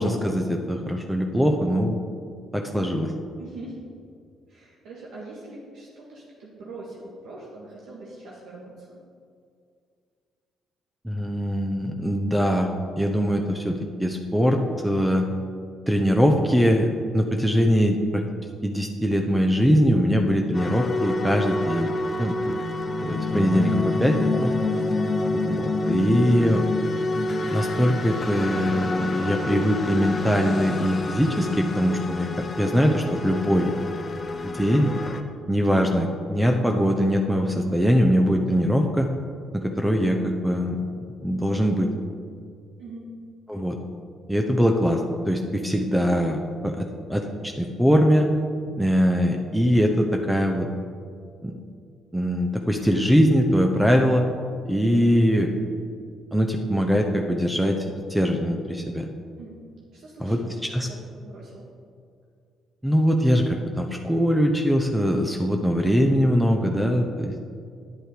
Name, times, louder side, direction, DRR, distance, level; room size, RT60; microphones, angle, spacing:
voice 1, 0.0-2.0 2.5-3.1 11.0-12.7 13.0-15.3 15.9-18.2 18.6-21.9 22.2-22.3 23.0-24.5 25.3-26.6 27.5-33.7 34.4-34.9 35.5-39.1 39.5-40.8 41.2-41.9 43.5-43.8 44.3-45.0 45.3-48.3 48.8-50.7 51.4-51.5 52.1-54.2 54.7-55.5 56.3-57.8 58.1-59.1 60.2-60.4 60.7-60.9 62.8-67.4, equal, 5° right, 3 dB, 0.9 m, -22 dB
voice 2, 3.4-3.8 4.5-9.0 22.3-22.7 42.8-43.1 59.4-59.6 59.9-61.6, right 2 dB, 75° right, -5 dB, 1.6 m, -42 dB
sound 1, 20.5-35.2, left 3 dB, 40° left, 1.0 m, -28 dB
9.6 x 7.6 x 5.0 m, 2.3 s
supercardioid pair, 60°, 0 cm